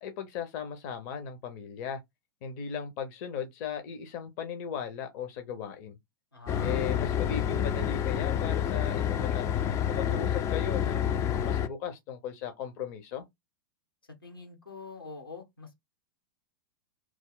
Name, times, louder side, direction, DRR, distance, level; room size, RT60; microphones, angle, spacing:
voice 1, 0.0-2.0 2.4-6.0 6.6-9.4 9.9-13.2, left 7 dB, 50° left, 0.7 m, -37 dB
voice 2, 6.3-6.9 14.2-15.7, left 3 dB, 90° left, 1.2 m, -43 dB
sound 1, 6.5-11.7, left 9 dB, 25° left, 0.3 m, -28 dB
3.0 x 2.0 x 3.8 m
figure-of-eight pair, 95°, 12 cm